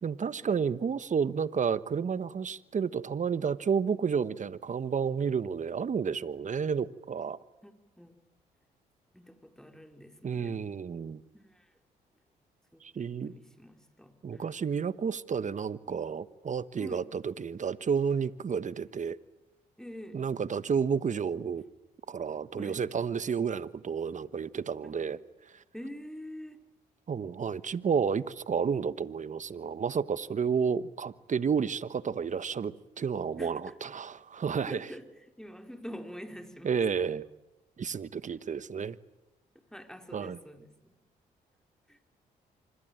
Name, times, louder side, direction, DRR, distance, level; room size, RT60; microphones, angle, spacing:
voice 1, 0.0-7.4 10.2-11.2 12.8-13.3 14.2-19.2 20.1-21.6 22.1-25.2 27.1-34.9 36.6-37.2 37.8-39.0 40.1-40.4, right 6 dB, 45° right, 16 dB, 1.2 m, -31 dB
voice 2, 7.6-8.2 9.1-10.6 11.3-11.7 12.7-14.5 16.8-17.1 19.8-20.2 22.6-22.8 24.8-24.9 25.7-26.6 33.4-33.7 34.7-35.1 35.4-36.8 38.3-38.4 39.7-41.0 41.9-42.0, equal, 5° left, 5 dB, 4.2 m, -46 dB
25.5 x 22.5 x 9.1 m, 0.94 s
supercardioid pair, 60°, 18 cm